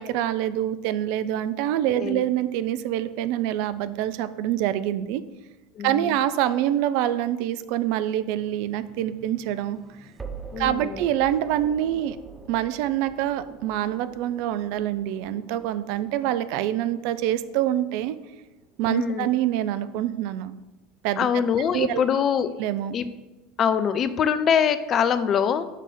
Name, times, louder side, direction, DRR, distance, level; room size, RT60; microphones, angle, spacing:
voice 1, 0.0-5.2 5.8-9.8 10.6-12.2 12.5-18.2 18.8-20.5 21.0-21.3 21.7-22.0 22.6-22.9, right 12 dB, 55° right, 13 dB, 0.3 m, -25 dB
voice 2, 5.8-6.2 10.5-11.0 18.9-19.3 21.2-22.5 22.9-23.1 23.6-25.6, left 7 dB, 35° left, 13 dB, 0.4 m, -23 dB
sound 1, 8.4-19.4, right 4 dB, 20° right, 0.6 m, -45 dB
6.6 x 3.3 x 5.1 m, 1.1 s
figure-of-eight pair, 75°, 0 cm